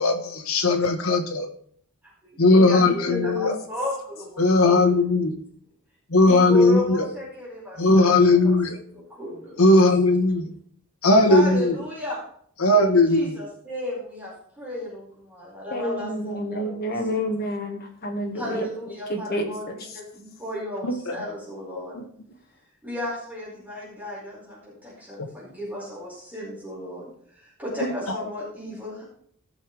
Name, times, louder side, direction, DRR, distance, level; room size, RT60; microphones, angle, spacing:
voice 1, 0.0-1.5 2.4-3.6 4.4-5.3 6.1-7.1 7.8-8.8 9.6-10.5 11.0-11.8 12.6-13.3 20.8-21.2 21.9-22.0 25.2-25.3 27.8-28.2, left 2 dB, 75° left, 5 dB, 1.3 m, -18 dB
voice 2, 2.2-5.0 6.2-8.6 8.9-9.6 11.3-12.2 12.7-12.8 13.1-16.9 18.3-22.0 22.8-29.0, left 1 dB, 10° right, -7 dB, 4.7 m, -34 dB
voice 3, 3.1-3.6 15.7-18.7 19.1-20.0, left 1 dB, 45° left, 2 dB, 1.7 m, -29 dB
17.0 x 6.5 x 3.4 m, 0.62 s
head